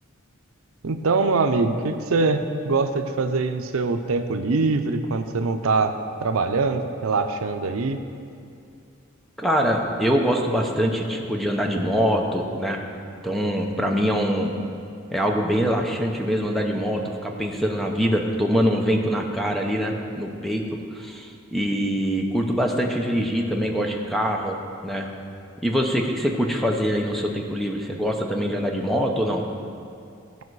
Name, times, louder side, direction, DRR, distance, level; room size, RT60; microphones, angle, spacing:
voice 1, 0.8-8.0, right 3 dB, 80° right, 7 dB, 0.6 m, -23 dB
voice 2, 9.4-12.8 13.2-14.5 15.1-20.6 20.9-24.6 24.8-25.1 25.6-29.4, equal, ahead, 1 dB, 0.7 m, -24 dB
16.0 x 5.4 x 4.7 m, 2.5 s
head